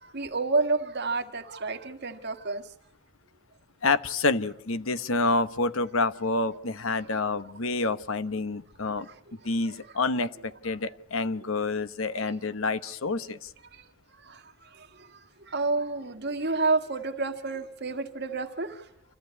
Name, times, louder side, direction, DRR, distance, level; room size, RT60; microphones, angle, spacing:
voice 1, 0.0-2.7 6.9-7.0 9.0-9.4 9.8-9.9 12.2-12.3 13.7-13.9 14.2-18.9, right 3 dB, 50° right, 1.9 m, -30 dB
voice 2, 3.8-9.1 9.4-13.5, left 3 dB, 70° left, 1.1 m, -28 dB
27.5 x 14.5 x 9.5 m
head